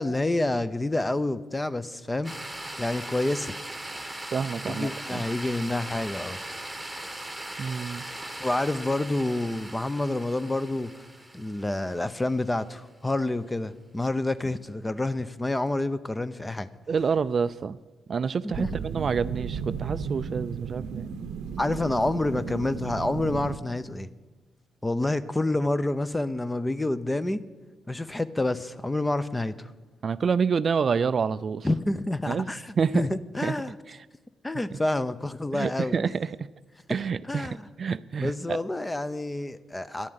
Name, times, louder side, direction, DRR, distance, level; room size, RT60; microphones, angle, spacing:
voice 1, 0.0-2.3 2.8-3.5 4.7-6.4 8.4-11.0 11.3-16.7 18.4-18.7 21.6-24.1 24.8-27.4 27.9-29.7 31.6-33.8 34.4-36.0 37.2-37.7 38.2-40.1, left 2 dB, 15° left, 14 dB, 0.6 m, -28 dB
Synthetic rain, 2.2-12.5, right 1 dB, 5° right, 1.4 m, -39 dB
voice 2, 4.3-5.2 7.6-8.0 16.9-17.8 18.1-21.1 30.0-31.7 32.3-33.0 33.4-33.5 33.9-34.0 35.5-36.3 36.9-38.6, right 6 dB, 45° right, 15 dB, 0.3 m, -28 dB
sound 1, 18.5-23.6, right 6 dB, 80° right, 0.7 m, -34 dB
10.5 x 7.3 x 9.5 m, 1.3 s
cardioid pair, 90°, 0 cm